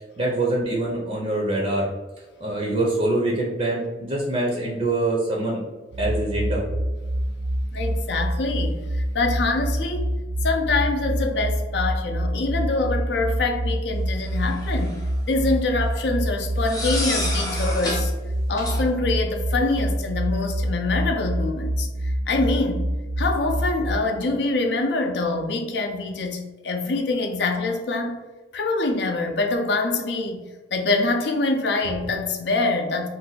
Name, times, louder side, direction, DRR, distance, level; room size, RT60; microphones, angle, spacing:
voice 1, 0.2-1.9 2.4-5.6 6.0-6.6, right 2 dB, 35° right, -3 dB, 0.5 m, -24 dB
sound 1, 5.9-23.9, right 1 dB, 80° right, 0.5 m, -26 dB
voice 2, 7.7-8.8 9.1-10.1 10.4-15.0 15.3-18.1 18.5-21.9 22.3-22.9 23.2-28.2 28.5-30.4 30.7-33.1, left 3 dB, 70° left, 4 dB, 0.5 m, -25 dB
sound 2, 14.4-15.1 16.6-18.1 18.6-18.8, left 1 dB, 20° left, 0.7 m, -29 dB
2.6 x 2.2 x 3.9 m, 1.2 s
head